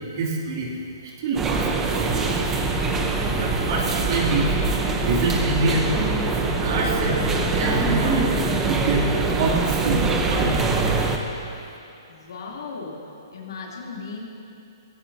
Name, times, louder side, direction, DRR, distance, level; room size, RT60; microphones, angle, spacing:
voice 1, 0.1-0.7 1.2-2.4 3.3-4.5 5.1-6.1 6.6-9.1 9.3-10.0 10.3-10.6, right 3 dB, 50° right, -4 dB, 2.9 m, -26 dB
sound 1, 1.4-11.2, right 3 dB, 15° right, 0.9 m, -23 dB
voice 2, 12.1-14.2, left 4 dB, 70° left, -3 dB, 3.3 m, -36 dB
18.0 x 16.0 x 2.9 m, 2.8 s
hypercardioid pair, 155°, 2 cm